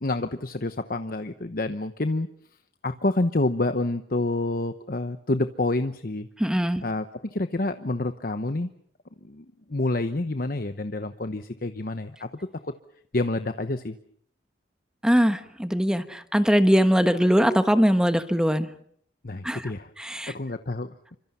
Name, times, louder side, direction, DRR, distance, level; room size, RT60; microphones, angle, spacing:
voice 1, 0.0-2.3 2.8-6.3 6.8-8.7 9.2-12.3 12.6-12.7 13.1-14.0 19.2-19.9 20.3-20.9, left 2 dB, 50° left, 9 dB, 1.0 m, -28 dB
voice 2, 6.4-6.8 15.0-18.7 19.4-19.7 20.0-20.3, equal, 5° right, 9 dB, 1.2 m, -21 dB
28.5 x 25.0 x 5.6 m, 0.65 s
head